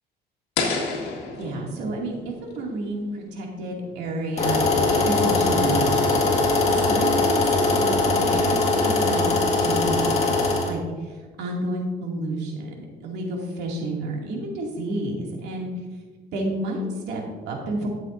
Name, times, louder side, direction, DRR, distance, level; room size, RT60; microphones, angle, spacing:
sound 1, 0.6-3.6, left 4 dB, 85° left, 2.0 m, -31 dB
voice 1, 1.4-10.0 10.6-15.7 16.3-17.9, right 1 dB, 80° right, -1 dB, 2.5 m, -30 dB
sound 2, 4.4-10.7, left 3 dB, 40° left, 2.0 m, -21 dB
13.0 x 7.8 x 2.6 m, 1.4 s
cardioid pair, 110°, 17 cm